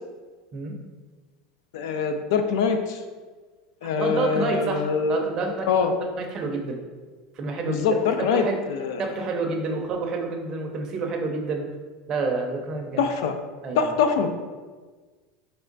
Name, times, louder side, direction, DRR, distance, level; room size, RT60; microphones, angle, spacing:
voice 1, 1.7-3.0 3.8-5.2 5.6-5.9 7.7-9.0 13.0-13.3 13.8-14.3, left 5 dB, 75° left, 7 dB, 0.5 m, -24 dB
voice 2, 3.8-5.7 6.1-6.8 7.4-7.9 8.2-8.6 9.0-11.7 12.1-13.1 13.6-13.9, right 3 dB, 25° right, 2 dB, 0.5 m, -28 dB
3.5 x 3.3 x 3.9 m, 1.4 s
supercardioid pair, 165°, 2 cm